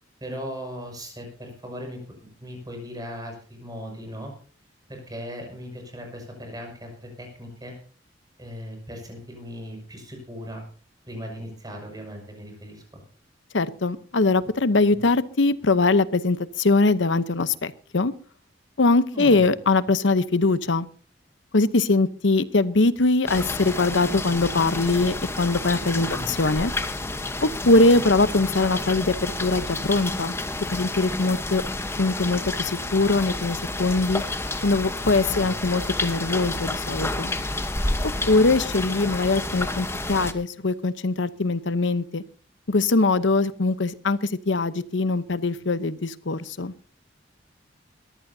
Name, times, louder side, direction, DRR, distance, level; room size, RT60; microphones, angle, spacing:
voice 1, 0.2-2.0 2.4-4.3 4.9-7.7 8.4-10.6 11.1-13.0 14.9-15.0 19.0-19.4 26.0-26.3 35.3-35.7 38.1-38.3, equal, 20° right, 2 dB, 6.3 m, -38 dB
voice 2, 13.5-18.1 18.8-20.9 21.5-26.7 27.4-30.3 30.7-31.6 32.0-34.2 34.6-37.3 38.3-42.2 42.7-46.7, left 3 dB, 75° left, 14 dB, 0.9 m, -22 dB
sound 1, 23.3-40.3, left 2 dB, 15° left, 1.1 m, -30 dB
21.5 x 15.0 x 2.8 m, 0.41 s
head